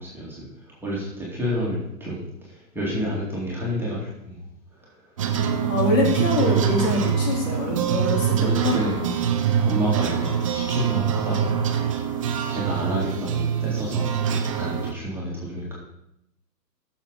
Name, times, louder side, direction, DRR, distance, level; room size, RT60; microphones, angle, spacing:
voice 1, 0.0-4.4 8.4-9.0 9.6-11.6 12.5-14.1 14.5-15.7, equal, 5° right, -7 dB, 2.4 m, -29 dB
sound 1, 5.2-14.9, right 8 dB, 20° right, 0.5 m, -24 dB
voice 2, 5.6-8.7, left 3 dB, 50° left, -2 dB, 3.8 m, -24 dB
14.0 x 7.1 x 4.0 m, 0.79 s
hypercardioid pair, 135°, 50 cm